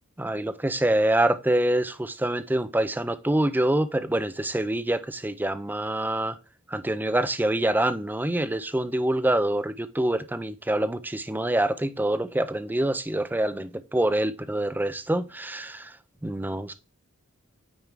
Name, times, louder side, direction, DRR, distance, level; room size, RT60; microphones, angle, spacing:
voice 1, 0.2-6.4 6.7-15.9 16.2-16.7, right 1 dB, 10° right, 0.5 m, -26 dB
9.1 x 3.6 x 4.6 m
head